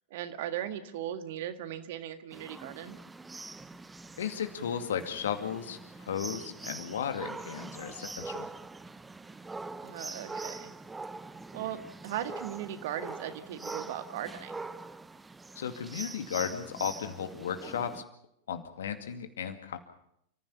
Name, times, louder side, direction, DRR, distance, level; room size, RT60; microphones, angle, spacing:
voice 1, 0.1-3.0 9.8-10.7 11.5-14.7, right 11 dB, 55° right, 9 dB, 1.8 m, -38 dB
sound 1, 2.3-18.0, right 3 dB, 10° right, 0.9 m, -43 dB
voice 2, 4.2-8.5 15.6-18.0 18.5-19.8, left 8 dB, 65° left, 8 dB, 2.3 m, -35 dB
29.5 x 15.0 x 7.1 m, 0.74 s
figure-of-eight pair, 90°, 0 cm